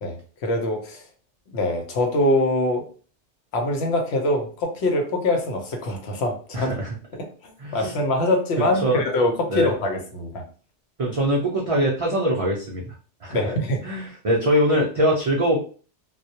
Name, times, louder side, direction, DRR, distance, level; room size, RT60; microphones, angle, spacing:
voice 1, 0.0-1.0 1.5-2.8 3.5-6.8 7.1-10.4 13.3-13.8, left 1 dB, 70° left, 3 dB, 0.9 m, -24 dB
voice 2, 6.5-6.9 7.6-8.0 8.6-9.0 9.5-9.7 11.0-12.9 13.2-13.5 13.8-15.6, equal, 60° right, -3 dB, 0.3 m, -23 dB
2.2 x 2.0 x 2.7 m, 0.39 s
omnidirectional pair, 1.2 m